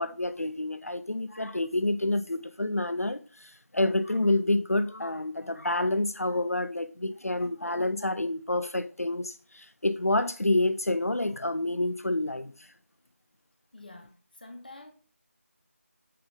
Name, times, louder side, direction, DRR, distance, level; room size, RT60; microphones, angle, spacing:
voice 1, 0.0-12.7, left 2 dB, 80° left, 0.6 m, -28 dB
voice 2, 13.7-14.9, left 2 dB, 35° left, 1.3 m, -47 dB
8.6 x 5.0 x 3.6 m
figure-of-eight pair, 170°, 8 cm